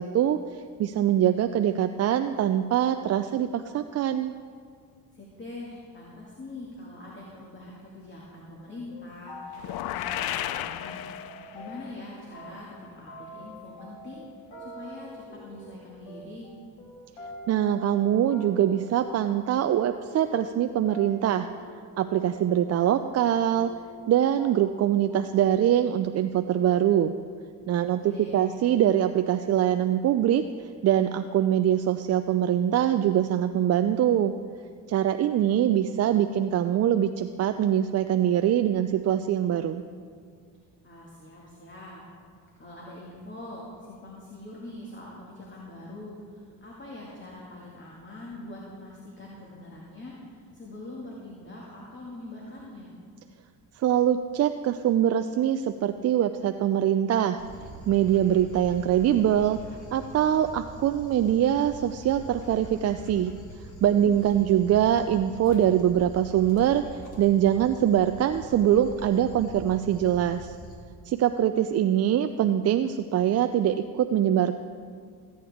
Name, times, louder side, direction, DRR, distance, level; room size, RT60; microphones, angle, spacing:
voice 1, 0.0-4.3 17.5-21.5 22.0-23.7 24.1-27.1 27.7-28.0 28.3-30.4 30.8-34.3 34.9-39.8 53.8-57.4 57.9-59.6 59.9-63.3 63.8-66.8 67.2-70.6 71.1-74.5, right 10 dB, 40° right, 8 dB, 0.4 m, -23 dB
voice 2, 5.1-16.5 28.0-28.5 40.8-42.0 42.6-52.9 64.0-64.5, left 2 dB, 30° left, -4 dB, 2.1 m, -43 dB
sound 1, 8.6-8.7 8.9-9.7 10.0-12.1 12.3-24.1 24.4-24.8 25.1-25.5, equal, 80° left, 2.3 m, -45 dB
sound 2, 9.6-11.8, left 12 dB, 65° left, 0.5 m, -33 dB
Dog, 57.4-70.7, right 1 dB, 50° left, 2.5 m, -44 dB
15.0 x 8.6 x 3.6 m, 2.1 s
supercardioid pair, 80°, 40 cm